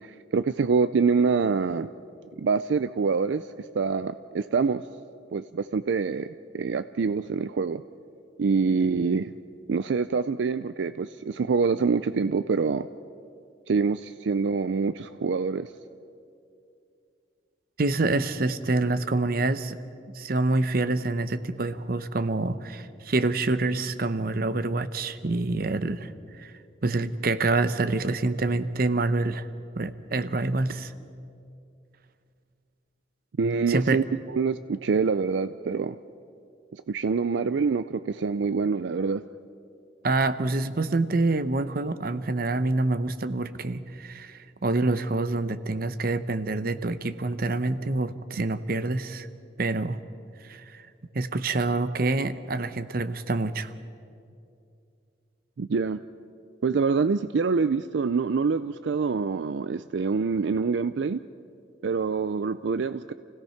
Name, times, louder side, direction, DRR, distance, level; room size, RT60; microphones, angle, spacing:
voice 1, 0.0-1.9 2.4-4.8 5.3-7.8 8.4-9.3 9.7-12.9 13.7-15.7 33.4-34.0 34.3-36.0 36.7-39.2 55.6-56.0 56.6-61.2 61.8-63.1, right 5 dB, 75° right, 13 dB, 0.4 m, -25 dB
voice 2, 17.8-19.8 20.1-26.5 26.8-29.5 29.8-30.9 33.7-34.0 40.0-49.3 49.6-50.0 50.4-50.9 51.1-53.7, right 2 dB, 50° right, 13 dB, 0.8 m, -26 dB
28.5 x 16.5 x 5.8 m, 2.5 s
head